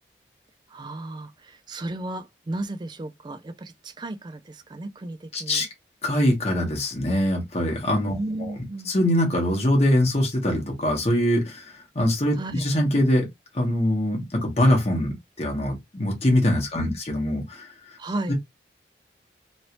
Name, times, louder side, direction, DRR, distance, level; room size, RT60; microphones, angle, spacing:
voice 1, 0.7-5.7 8.1-8.9 12.4-12.6 16.8-17.0 18.0-18.3, right 2 dB, 25° right, 0.3 m, -34 dB
voice 2, 5.3-5.7 6.0-8.5 8.9-13.3 13.5-17.7 18.3-18.4, left 1 dB, 35° left, 1.1 m, -23 dB
3.1 x 2.7 x 2.9 m
head